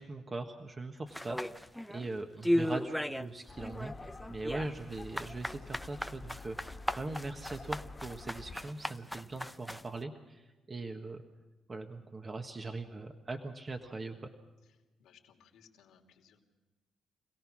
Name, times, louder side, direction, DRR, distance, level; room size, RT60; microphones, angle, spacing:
voice 1, 0.0-11.2 11.7-14.3, right 2 dB, 30° right, 4 dB, 1.4 m, -41 dB
sound 1, 1.1-2.1 2.4-3.3 3.6-9.9, equal, ahead, 0.7 m, -35 dB
sound 2, 3.5-8.6, left 3 dB, 30° left, 1.8 m, -49 dB
voice 2, 14.7-16.4, left 7 dB, 80° left, 2 dB, 2.8 m, -63 dB
26.5 x 17.5 x 6.2 m, 1.2 s
cardioid pair, 90°, 0 cm